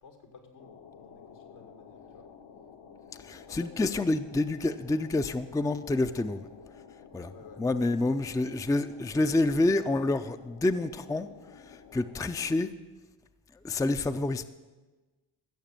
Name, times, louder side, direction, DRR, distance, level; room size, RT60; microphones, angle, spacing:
voice 1, 0.0-2.3 3.1-4.0 7.3-7.8 8.1-8.2, left 5 dB, 75° left, 3 dB, 2.2 m, -52 dB
sound 1, 0.6-12.6, left 6 dB, 60° left, 1.2 m, -52 dB
voice 2, 3.2-6.5 7.1-7.3 7.6-11.3 11.7-12.7 13.6-14.4, left 2 dB, 5° left, 10 dB, 0.5 m, -28 dB
15.0 x 6.7 x 7.4 m, 1.2 s
hypercardioid pair, 45°, 50 cm